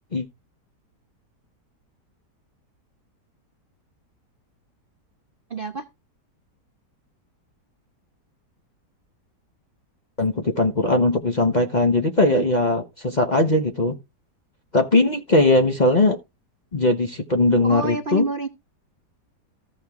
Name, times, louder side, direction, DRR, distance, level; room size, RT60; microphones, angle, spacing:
voice 1, 5.5-5.8 12.3-12.4 17.6-18.5, right 3 dB, 45° right, 0.7 m, -28 dB
voice 2, 10.2-14.0 14.7-16.2 16.7-18.2, left 2 dB, 35° left, 0.8 m, -19 dB
14.5 x 6.2 x 3.5 m
omnidirectional pair, 1.8 m